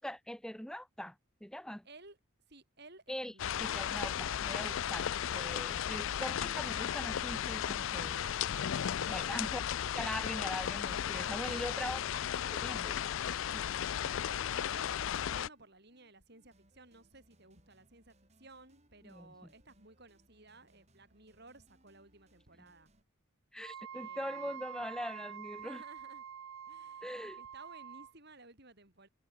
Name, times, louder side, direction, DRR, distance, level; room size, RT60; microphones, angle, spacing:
voice 1, 0.0-1.9 3.1-3.3 3.6-8.2 9.1-9.6 9.9-12.0 12.5-13.0 13.5-13.7 19.0-19.3 23.5-25.8 27.0-27.4, equal, 5° left, 0.5 m, -42 dB
voice 2, 1.9-2.2 2.5-3.9 7.9-8.5 9.2-9.4 11.7-12.2 14.0-14.9 15.2-22.9 23.9-24.6 25.6-26.2 26.7-29.1, right 2 dB, 50° right, 6.9 m, -57 dB
sound 1, 3.4-15.5, left 9 dB, 65° left, 0.4 m, -35 dB
sound 2, 10.0-23.0, right 1 dB, 30° right, 3.7 m, -69 dB
Wind instrument woodwind instrument, 23.6-28.1, right 8 dB, 65° right, 0.4 m, -46 dB
head